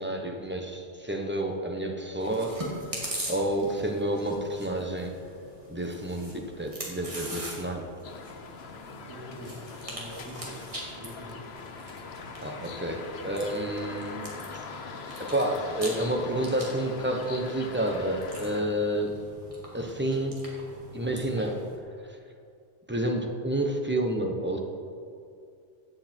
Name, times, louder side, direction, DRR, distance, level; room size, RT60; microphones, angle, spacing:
voice 1, 0.0-2.9 3.3-5.2 5.7-7.9 12.4-14.3 15.2-19.2 19.7-20.4 20.9-21.6 22.1-22.2 22.9-24.6, right 1 dB, 10° right, 2 dB, 1.0 m, -29 dB
Chewing mastication, 2.2-21.8, right 1 dB, 30° right, 2.4 m, -42 dB
sound 1, 8.0-18.6, left 4 dB, 65° left, 1.1 m, -42 dB
voice 2, 8.9-10.6 11.0-11.5, equal, 80° right, -4 dB, 3.0 m, -44 dB
15.5 x 8.7 x 4.5 m, 2.4 s
omnidirectional pair, 1.2 m